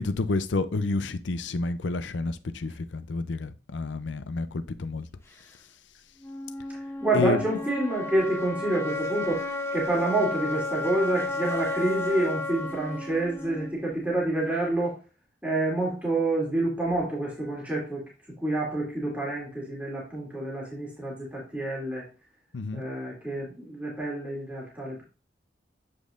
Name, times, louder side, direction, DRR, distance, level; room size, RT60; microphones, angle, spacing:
voice 1, 0.0-5.1 7.1-7.5 22.5-22.8, left 3 dB, 85° left, 0.6 m, -29 dB
sound 1, 6.2-14.2, left 2 dB, 15° left, 0.7 m, -33 dB
voice 2, 7.0-9.4 9.7-14.9 15.4-18.0 18.4-22.0 22.7-25.0, right 2 dB, 10° right, 2.7 m, -28 dB
8.1 x 5.3 x 2.5 m
head